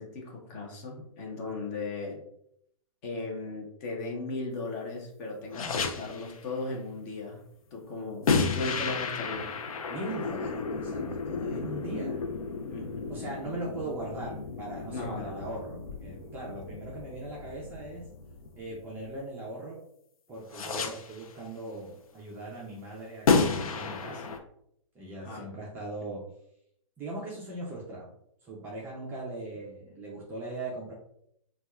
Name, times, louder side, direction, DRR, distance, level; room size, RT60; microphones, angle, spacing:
voice 1, 0.0-2.2 3.0-7.4 7.7-9.5 12.7-13.1 14.9-15.5 25.2-25.4, left 3 dB, 30° left, 0 dB, 0.7 m, -37 dB
sound 1, 5.5-6.4 8.3-19.2 20.5-21.3 23.3-24.4, left 4 dB, 90° left, 0.5 m, -32 dB
voice 2, 9.9-12.2 13.1-18.0 18.5-19.8 20.3-24.3 24.9-26.2 27.0-28.1 28.4-30.9, right 2 dB, 10° right, -5 dB, 0.4 m, -39 dB
4.1 x 2.3 x 2.3 m, 0.74 s
hypercardioid pair, 155°, 18 cm